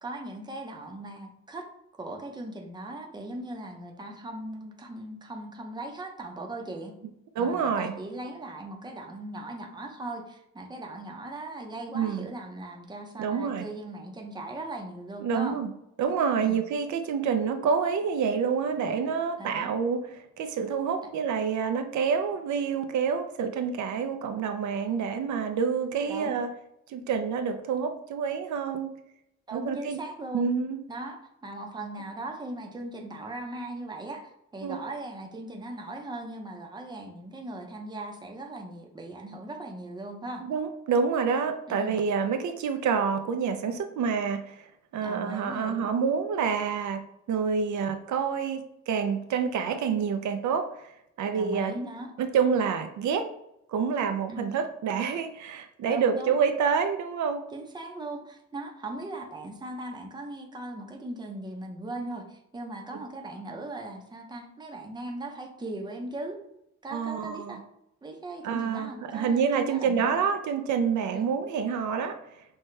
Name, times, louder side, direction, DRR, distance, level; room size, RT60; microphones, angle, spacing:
voice 1, 0.0-1.7 2.0-6.9 7.4-15.6 16.4-16.6 19.4-19.7 26.1-26.3 29.5-30.5 30.9-40.5 41.7-42.0 45.0-45.9 51.3-52.1 54.3-54.5 55.9-56.3 57.5-66.4 66.8-67.6 68.0-70.2 71.1-71.3, right 2 dB, 15° right, 2 dB, 0.6 m, -39 dB
voice 2, 7.4-7.9 11.9-12.3 13.2-13.6 15.2-15.7 16.0-26.5 26.9-28.9 29.5-30.0 30.3-30.8 34.6-34.8 40.4-44.7 44.9-50.7 51.2-51.8 52.2-53.3 53.7-57.5 66.9-67.6 68.4-72.2, right 6 dB, 75° right, 7 dB, 0.5 m, -27 dB
5.7 x 2.2 x 3.2 m, 0.80 s
cardioid pair, 120°, 30 cm